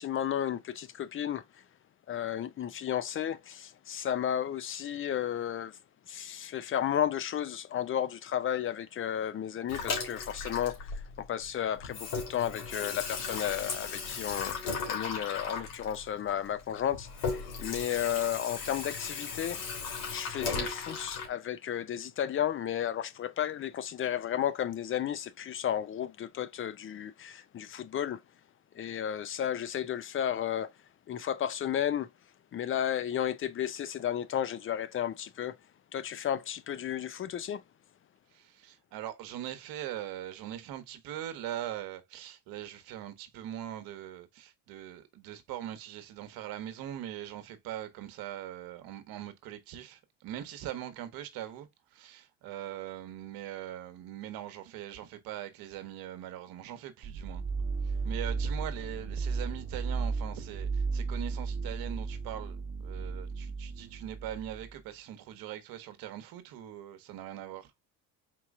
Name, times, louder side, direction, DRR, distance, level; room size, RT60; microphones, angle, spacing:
voice 1, 0.0-1.6 2.1-5.8 6.1-14.6 14.9-19.6 20.1-28.2 28.7-30.7 31.1-32.1 32.5-35.6 35.9-37.6, left 10 dB, 35° left, 0.5 m, -33 dB
Water tap faucet / Sink (filling or washing), 9.7-11.5 11.8-21.3, left 5 dB, 75° left, 2.1 m, -36 dB
voice 2, 38.3-57.4 57.8-67.7, right 12 dB, 70° right, 1.1 m, -41 dB
sound 1, 57.0-64.7, right 4 dB, 35° right, 1.2 m, -34 dB
4.5 x 3.0 x 3.5 m
supercardioid pair, 95°, 37 cm